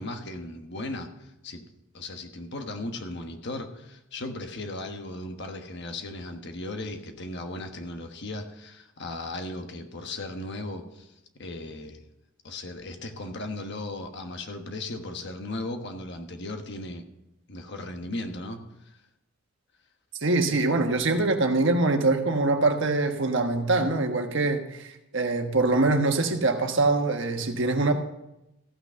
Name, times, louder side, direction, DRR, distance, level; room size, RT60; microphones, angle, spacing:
voice 1, 0.0-1.7 1.9-11.1 11.4-12.0 12.4-17.0 17.5-18.6, left 2 dB, 55° left, 6 dB, 1.3 m, -36 dB
voice 2, 20.2-24.9 25.1-27.9, right 2 dB, 65° right, 5 dB, 1.3 m, -23 dB
15.0 x 6.0 x 6.7 m, 0.91 s
head